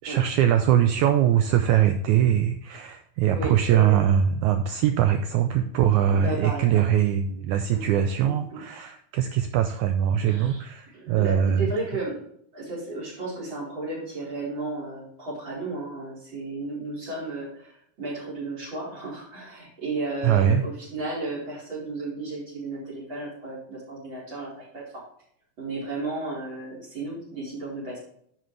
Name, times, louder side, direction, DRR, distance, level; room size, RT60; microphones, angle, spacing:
voice 1, 0.0-11.6 20.2-20.6, right 10 dB, 90° right, 7 dB, 1.7 m, -22 dB
voice 2, 3.3-4.0 6.1-6.9 7.7-7.8 8.2-8.6 10.2-12.2 12.5-24.8 25.6-28.0, right 2 dB, 30° right, -4 dB, 4.8 m, -34 dB
10.5 x 6.7 x 3.2 m, 0.70 s
omnidirectional pair, 4.1 m